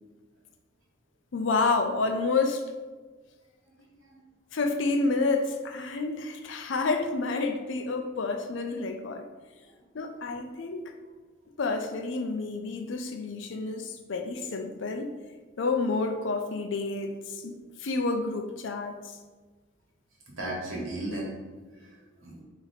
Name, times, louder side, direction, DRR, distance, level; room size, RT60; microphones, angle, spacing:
voice 1, 1.3-2.6 4.5-9.3 9.9-10.8 11.6-15.1 15.6-19.2, left 3 dB, 65° left, 5 dB, 0.5 m, -29 dB
voice 2, 3.7-4.2 9.6-9.7 20.3-22.4, right 1 dB, 85° right, -3 dB, 1.4 m, -37 dB
4.2 x 2.9 x 4.1 m, 1.3 s
head